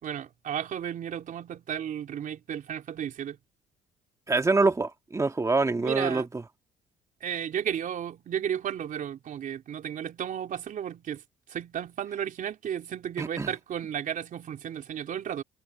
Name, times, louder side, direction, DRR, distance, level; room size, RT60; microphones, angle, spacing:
voice 1, 0.0-3.4 5.8-6.3 7.2-11.2 11.5-15.4, right 9 dB, 55° right, 3.4 m, -33 dB
voice 2, 4.3-6.2 13.2-13.5, right 3 dB, 20° right, 1.9 m, -25 dB
cardioid pair, 110°, 17 cm